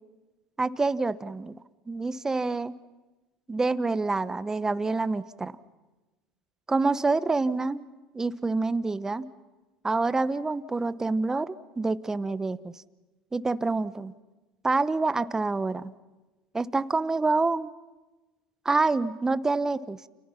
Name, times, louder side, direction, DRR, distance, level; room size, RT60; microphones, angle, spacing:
voice 1, 0.6-1.5 1.9-2.7 3.5-5.5 6.7-7.8 8.1-9.3 9.8-12.7 13.3-14.1 14.6-15.9 16.5-17.7 18.6-20.0, right 3 dB, 15° right, 15 dB, 1.0 m, -27 dB
30.0 x 28.0 x 5.9 m, 1.2 s
hypercardioid pair, 85°, 3 cm